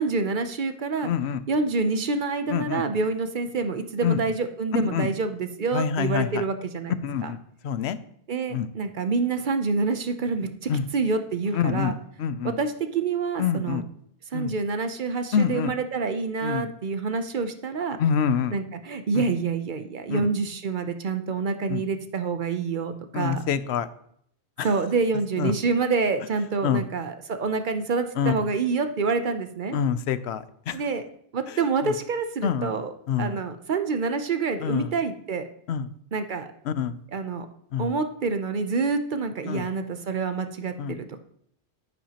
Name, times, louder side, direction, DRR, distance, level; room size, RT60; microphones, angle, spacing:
voice 1, 0.0-1.1 1.5-6.9 7.2-7.3 8.3-12.0 12.4-13.8 14.3-18.0 18.5-23.4 24.6-29.8 30.7-31.0 31.3-32.9 33.2-35.5 36.1-36.5 37.1-37.5 37.8-41.2, right 4 dB, 55° right, 8 dB, 0.8 m, -27 dB
voice 2, 1.0-1.4 2.5-2.8 4.0-4.2 4.7-5.1 5.7-6.4 7.0-7.4 7.6-8.0 8.5-8.7 10.7-10.8 11.5-11.9 12.2-12.6 13.4-13.8 14.3-14.6 15.3-15.7 16.4-16.7 18.0-18.6 19.1-19.2 20.1-20.2 21.7-21.8 23.1-23.9 24.6-24.7 25.4-25.5 26.6-26.8 28.2-28.3 29.7-30.8 31.8-31.9 32.4-32.7 33.1-33.4 34.6-34.9 35.7-35.9 36.7-37.0 37.7-37.9 39.5-39.6 40.8-41.0, left 8 dB, 85° left, 14 dB, 0.9 m, -26 dB
10.0 x 9.7 x 2.9 m, 0.69 s
omnidirectional pair, 1.1 m